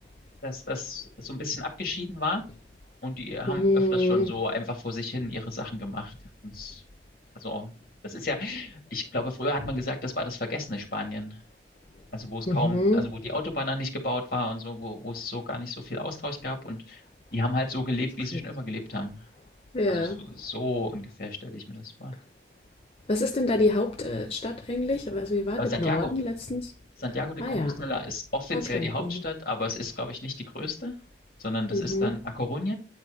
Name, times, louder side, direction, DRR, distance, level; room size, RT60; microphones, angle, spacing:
voice 1, 0.4-2.4 3.0-6.1 6.4-6.8 7.4-7.7 8.0-11.4 12.1-17.0 17.3-19.2 19.9-22.1 25.6-26.1 27.0-30.9 31.4-32.7, left 2 dB, 50° left, 2.2 m, -32 dB
voice 2, 3.5-4.3 12.5-13.0 19.7-20.2 23.1-26.7 27.4-27.7 31.7-32.2, left 2 dB, 30° left, 0.6 m, -26 dB
9.1 x 4.4 x 3.8 m
head